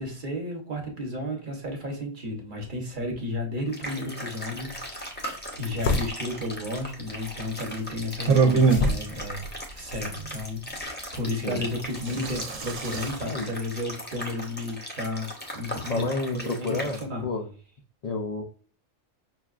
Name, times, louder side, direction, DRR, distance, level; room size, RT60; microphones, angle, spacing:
voice 1, 0.0-9.5 9.7-16.1 16.3-17.3, left 1 dB, 45° right, 2 dB, 0.9 m, -33 dB
sound 1, 3.7-17.0, equal, 10° left, 0.5 m, -38 dB
sound 2, 4.7-10.8, left 3 dB, 60° left, 0.8 m, -33 dB
sound 3, 8.3-8.9 10.8-10.9 11.9-13.1, right 5 dB, 75° right, 1.0 m, -22 dB
voice 2, 15.9-17.5 18.0-18.4, left 3 dB, 75° left, 2 dB, 0.3 m, -30 dB
5.7 x 2.3 x 2.3 m, 0.42 s
omnidirectional pair, 1.3 m